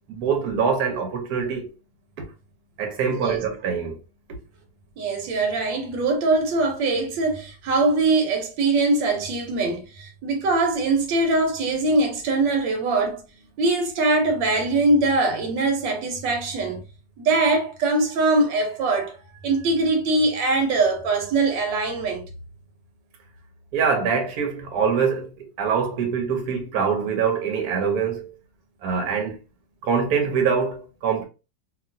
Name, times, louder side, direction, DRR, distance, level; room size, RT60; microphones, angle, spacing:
voice 1, 0.1-1.7 2.8-4.0 23.7-28.3 28.8-29.4 29.8-31.2, right 6 dB, 65° right, 1.2 m, -24 dB
voice 2, 3.1-3.4 5.0-13.2 13.6-16.8 17.2-19.2 19.4-22.3, right 2 dB, 85° right, 1.5 m, -22 dB
2.9 x 2.7 x 2.5 m
omnidirectional pair, 2.0 m